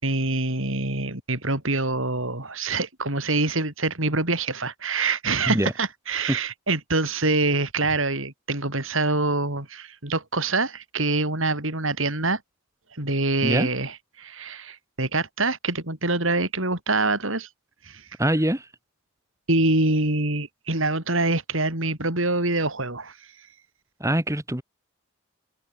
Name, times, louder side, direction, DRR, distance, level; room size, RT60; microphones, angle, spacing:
voice 1, 0.0-12.4 13.0-17.5 17.8-18.1 19.5-23.2, right 2 dB, 65° right, 6.0 m, -25 dB
voice 2, 18.2-18.7 24.0-24.6, right 1 dB, 15° right, 2.6 m, -23 dB
head